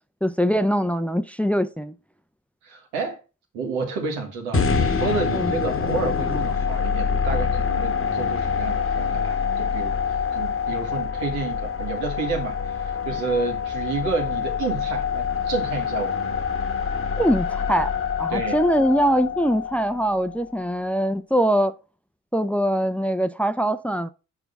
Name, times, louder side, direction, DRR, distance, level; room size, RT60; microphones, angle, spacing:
voice 1, 0.2-1.9 5.3-5.6 17.2-17.9 18.2-21.7 22.3-24.1, equal, 5° left, 0.7 m, -22 dB
voice 2, 2.6-3.2 3.5-9.9 10.3-16.2 18.3-18.6, right 4 dB, 85° right, 1.7 m, -30 dB
sound 1, 4.5-20.7, left 6 dB, 35° left, 1.2 m, -26 dB
6.1 x 4.5 x 5.3 m
hypercardioid pair, 40°, 39 cm